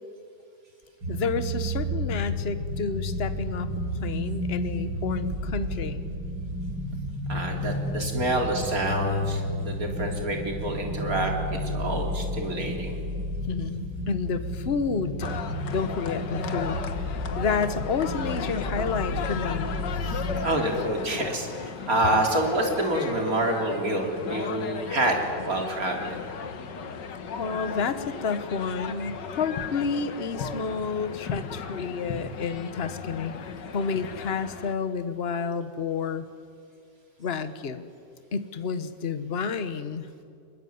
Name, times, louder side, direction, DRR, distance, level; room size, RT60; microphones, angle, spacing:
sound 1, 1.0-20.4, equal, 85° right, 4.3 m, -31 dB
voice 1, 1.1-3.7 4.0-6.0 13.5-15.3 15.7-19.7 20.1-20.2 27.4-33.4 33.7-36.3 37.2-37.9 38.3-40.1, left 5 dB, 40° left, 11 dB, 1.3 m, -30 dB
voice 2, 7.3-13.0 20.0-26.3, right 1 dB, 55° right, 2 dB, 3.8 m, -28 dB
sound 2, 15.2-34.7, left 6 dB, 80° left, 2.0 m, -36 dB
23.5 x 21.5 x 9.5 m, 2.3 s
omnidirectional pair, 1.9 m